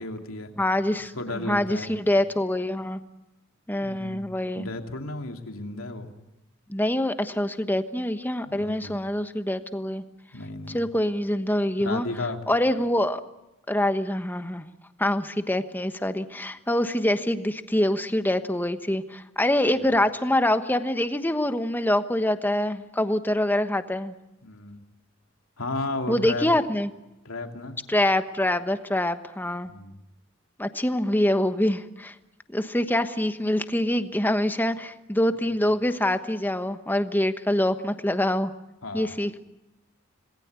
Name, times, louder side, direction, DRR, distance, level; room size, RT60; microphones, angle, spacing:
voice 1, 0.0-0.5 1.2-1.9 3.8-4.3 4.5-6.1 8.5-9.0 10.3-10.8 11.8-12.6 19.7-19.9 24.4-24.8 25.6-26.5 27.2-27.8 29.7-30.0 38.8-39.1, left 2 dB, 85° left, 4 dB, 2.9 m, -34 dB
voice 2, 0.6-3.0 3.7-4.7 6.7-10.0 10.7-12.1 12.5-13.2 13.7-14.6 15.0-24.1 26.1-26.9 27.9-29.7 30.6-32.1 32.5-38.5 38.9-39.4, left 1 dB, 10° left, 9 dB, 1.2 m, -25 dB
27.0 x 20.0 x 8.2 m, 0.95 s
head